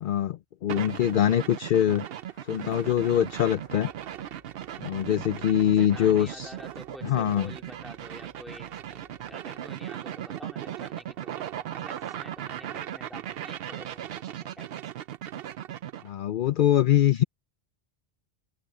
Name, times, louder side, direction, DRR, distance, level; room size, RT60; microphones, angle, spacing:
voice 1, 0.0-2.0 2.5-3.9 4.8-6.5 7.0-7.5 16.0-17.2, left 10 dB, 60° left, 0.7 m, -23 dB
sound 1, 0.7-16.1, right 11 dB, 70° right, 0.8 m, -38 dB
sound 2, 0.9-14.2, right 1 dB, 30° right, 5.4 m, -62 dB
sound 3, 2.7-10.2, right 1 dB, 55° right, 8.4 m, -58 dB
voice 2, 5.8-14.7, equal, ahead, 3.1 m, -48 dB
open air
omnidirectional pair, 1.1 m